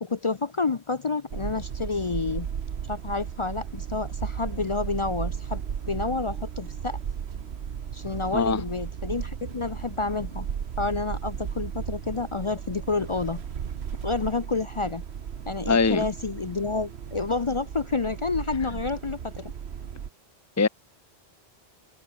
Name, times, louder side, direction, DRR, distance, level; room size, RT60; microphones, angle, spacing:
voice 1, 0.0-2.5 2.9-7.0 7.9-10.5 10.8-13.4 14.0-15.0 15.5-19.5, left 4 dB, 35° left, 0.5 m, -29 dB
sound 1, 1.3-20.1, right 8 dB, 75° right, 1.3 m, -35 dB
voice 2, 15.7-16.0 20.6-20.7, left 4 dB, 15° left, 0.9 m, -21 dB
omnidirectional pair, 1.1 m